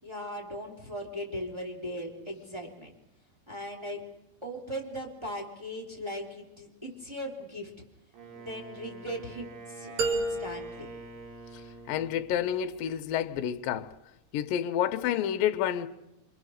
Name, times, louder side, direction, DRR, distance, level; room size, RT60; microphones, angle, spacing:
voice 1, 0.0-3.0 3.5-4.0 4.4-7.7 8.3-11.0, equal, 5° right, 3.3 m, -38 dB
Wind instrument woodwind instrument, 8.1-12.3, right 4 dB, 75° right, 5.8 m, -46 dB
sound 1, 10.0-12.0, right 3 dB, 50° right, 2.9 m, -33 dB
voice 2, 11.9-13.9 14.3-15.9, left 10 dB, 70° left, 2.5 m, -29 dB
27.0 x 25.5 x 6.6 m
omnidirectional pair, 4.6 m